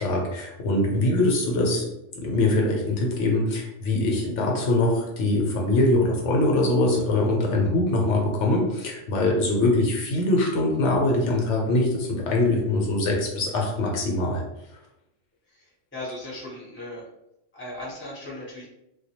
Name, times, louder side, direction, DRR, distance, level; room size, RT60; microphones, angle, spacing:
voice 1, 0.0-1.9 2.1-14.4, left 2 dB, 75° left, 0 dB, 0.9 m, -23 dB
voice 2, 15.5-17.1 17.5-18.6, left 1 dB, 15° left, -5 dB, 0.6 m, -37 dB
2.3 x 2.1 x 2.7 m, 0.86 s
omnidirectional pair, 1.3 m